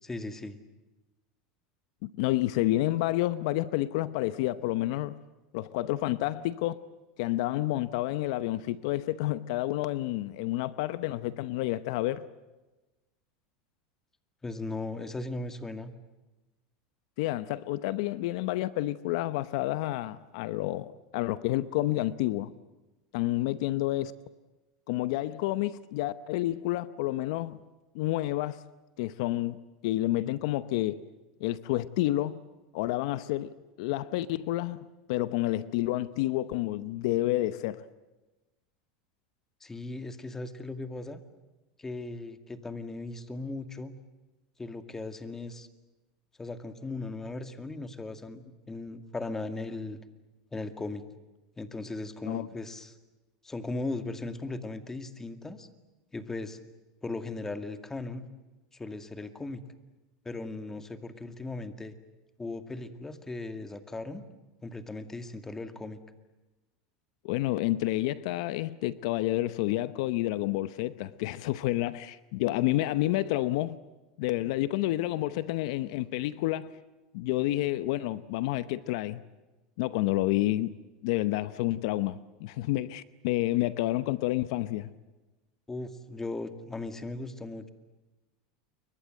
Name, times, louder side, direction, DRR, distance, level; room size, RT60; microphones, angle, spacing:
voice 1, 0.0-0.6 14.4-15.9 39.6-41.2 41.8-43.9 44.6-45.7 46.4-50.0 50.5-51.0 51.6-52.9 53.4-55.7 56.1-56.6 57.0-58.3 58.7-59.6 60.2-61.9 62.4-64.2 64.6-66.0 85.7-87.7, left 2 dB, 15° left, 2.1 m, -37 dB
voice 2, 2.0-5.2 5.5-6.8 7.2-12.3 17.2-22.5 23.1-24.1 24.9-27.6 27.9-28.6 29.0-31.0 31.4-32.4 32.7-34.8 35.1-37.9 52.2-52.5 67.2-73.8 74.2-76.7 77.1-79.2 79.8-80.7 81.0-84.9, left 16 dB, 70° left, 0.9 m, -29 dB
29.5 x 23.0 x 7.8 m
supercardioid pair, 120°, 3 cm